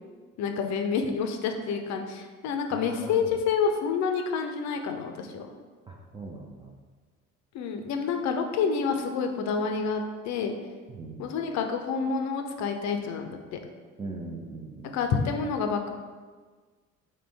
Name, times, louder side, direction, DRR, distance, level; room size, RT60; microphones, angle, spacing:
voice 1, 0.4-5.5 7.5-10.5 11.2-13.6 14.9-15.9, left 5 dB, 45° left, 5 dB, 0.5 m, -28 dB
voice 2, 2.7-3.3 5.9-6.8 10.9-11.2 14.0-15.0, right 3 dB, 15° right, -1 dB, 0.3 m, -40 dB
3.7 x 3.2 x 3.4 m, 1.4 s
figure-of-eight pair, 50°, 40 cm